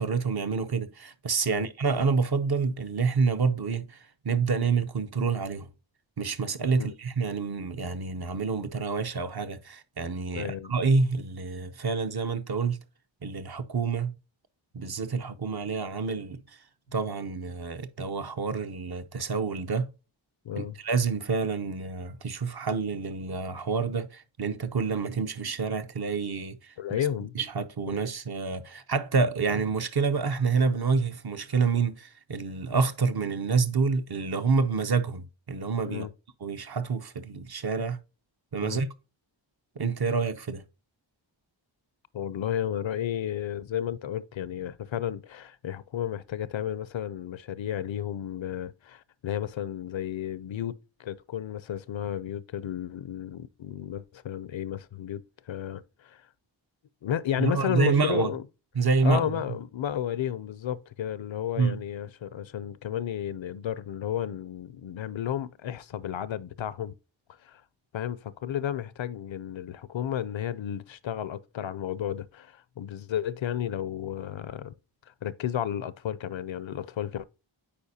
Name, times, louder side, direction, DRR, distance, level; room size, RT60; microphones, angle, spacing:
voice 1, 0.0-4.0 4.2-5.7 6.2-12.8 13.2-14.1 14.7-16.4 16.9-19.9 20.6-27.0 27.3-36.1 36.4-38.0 38.5-38.9 39.8-40.6 57.4-58.3 58.7-59.4 61.6-61.8, right 4 dB, 55° right, 0.7 m, -28 dB
voice 2, 10.3-10.7 20.4-20.8 26.8-27.3 27.9-28.0 35.9-36.1 38.6-38.8 42.1-50.7 51.0-56.3 57.0-58.4 59.0-66.9 67.4-67.6 67.9-74.7 75.2-77.2, left 10 dB, 75° left, 0.6 m, -32 dB
8.6 x 4.8 x 2.7 m
wide cardioid pair, 85°, 47 cm